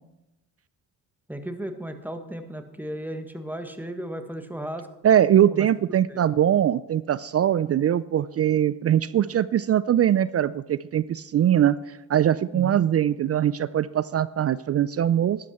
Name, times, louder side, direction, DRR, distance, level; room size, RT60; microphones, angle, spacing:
voice 1, 1.3-4.9 5.5-5.7 6.1-6.2 12.5-12.9, right 1 dB, 5° right, 7 dB, 1.6 m, -35 dB
voice 2, 5.0-11.8 12.1-15.4, right 10 dB, 40° right, 17 dB, 0.4 m, -21 dB
12.0 x 11.0 x 4.4 m, 0.99 s
supercardioid pair, 60°, 41 cm